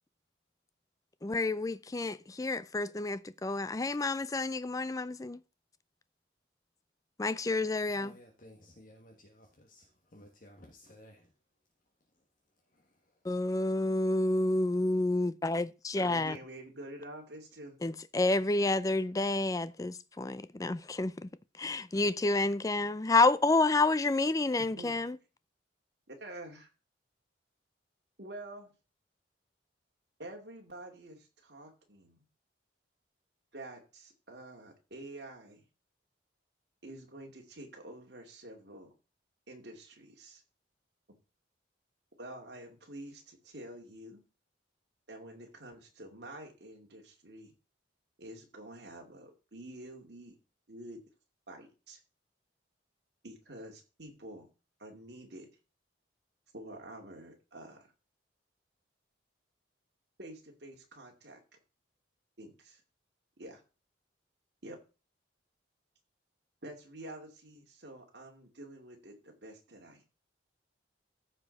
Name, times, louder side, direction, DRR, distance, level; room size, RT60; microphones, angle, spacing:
voice 1, 1.2-5.4 7.2-8.2 13.2-16.4 17.8-21.3 21.6-25.2, left 2 dB, 20° left, 0.4 m, -29 dB
voice 2, 7.9-11.3 12.7-12.9, left 1 dB, 45° left, 1.3 m, -56 dB
voice 3, 16.0-17.7 24.8-25.0 26.1-26.7 28.2-28.7 30.2-32.2 33.5-35.6 36.8-38.9 39.5-40.4 42.2-44.2 45.1-47.5 48.2-50.4 50.7-51.0 51.5-52.0 53.2-54.5 54.8-55.5 56.5-57.9 60.2-61.4 62.4-62.8 63.4-63.6 64.6-64.8 66.6-70.0, right 1 dB, 60° right, 2.4 m, -48 dB
14.5 x 5.0 x 4.1 m
head